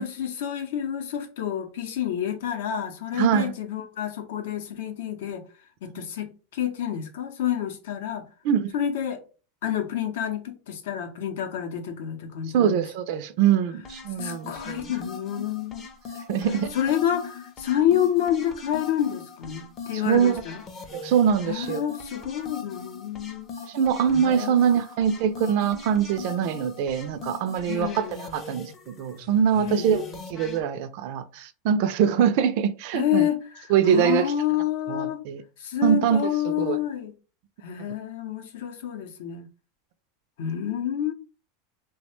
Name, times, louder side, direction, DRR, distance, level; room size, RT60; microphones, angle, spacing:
voice 1, 0.0-5.5 5.8-8.3 8.7-9.2 9.6-12.8 14.2-15.9 16.4-20.6 21.5-23.5 24.1-24.7 27.7-28.3 29.6-30.2 32.9-35.2 35.6-37.1 37.6-39.5 40.4-41.1, left 10 dB, 75° left, 0.6 m, -28 dB
voice 2, 3.2-3.5 8.4-8.7 12.5-14.9 16.3-16.7 20.1-20.4 20.9-21.8 23.7-30.0 30.3-33.3 33.7-34.3 34.9-35.4 35.8-36.3 36.6-36.8, right 8 dB, 55° right, 0.3 m, -23 dB
sound 1, 13.8-30.6, left 5 dB, 25° left, 0.5 m, -40 dB
3.1 x 2.1 x 3.0 m
supercardioid pair, 160°, 0 cm